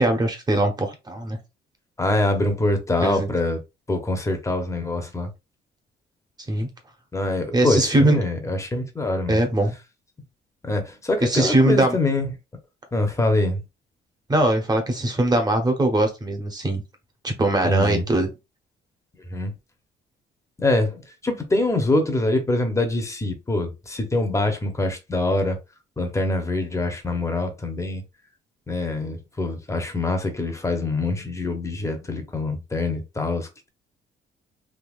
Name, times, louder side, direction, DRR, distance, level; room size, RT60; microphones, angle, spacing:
voice 1, 0.0-1.4 3.0-3.3 6.5-6.7 7.5-8.2 9.3-9.7 11.2-12.0 14.3-16.8 17.2-18.3, right 1 dB, 20° right, 1.0 m, -21 dB
voice 2, 2.0-3.6 3.9-5.3 7.1-9.4 10.6-12.3 12.9-13.6 17.6-18.0 19.3-19.5 20.6-25.6 26.0-28.0 28.7-33.7, left 2 dB, 15° left, 0.9 m, -24 dB
3.6 x 2.7 x 2.5 m
cardioid pair, 110°, 18 cm